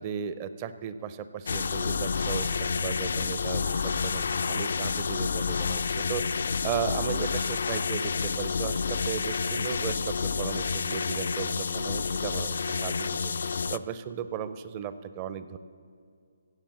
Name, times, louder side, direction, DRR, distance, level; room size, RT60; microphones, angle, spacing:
voice 1, 0.0-13.3 13.7-15.6, right 9 dB, 25° right, 13 dB, 0.5 m, -36 dB
sound 1, 1.5-13.8, left 5 dB, 55° left, 0.3 m, -29 dB
16.5 x 7.2 x 7.3 m, 2.3 s
figure-of-eight pair, 140°, 0 cm